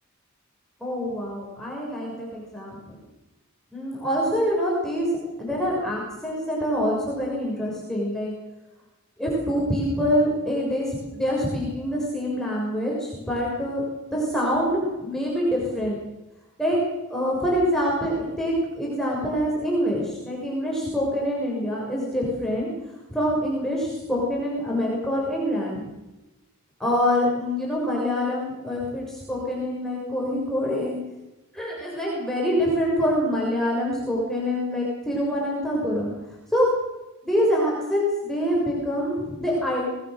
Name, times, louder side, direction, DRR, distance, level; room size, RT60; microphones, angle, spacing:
voice 1, 0.8-3.0 3.7-5.1 5.4-8.3 9.2-13.8 14.1-16.0 16.6-16.8 17.1-22.7 23.1-25.8 26.8-30.9 31.5-36.1 36.5-36.7 37.2-39.8, equal, ahead, -4 dB, 6.4 m, -25 dB
26.0 x 19.0 x 6.8 m, 1.0 s
head